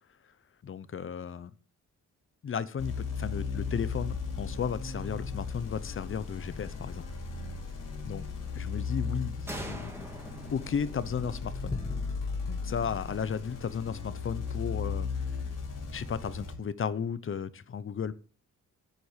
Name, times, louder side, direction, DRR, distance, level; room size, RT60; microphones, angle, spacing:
voice 1, 0.6-1.5 2.4-7.1 8.0-8.2 8.5-9.9 10.5-11.8 12.5-15.3 15.9-18.1, left 7 dB, 40° left, 0.8 m, -34 dB
sound 1, 2.8-16.5, left 5 dB, 85° left, 3.6 m, -36 dB
sound 2, 6.3-14.1, left 3 dB, 15° left, 1.0 m, -48 dB
sound 3, 9.5-13.0, right 1 dB, 10° right, 2.0 m, -45 dB
9.3 x 8.1 x 6.7 m
wide cardioid pair, 140°, 31 cm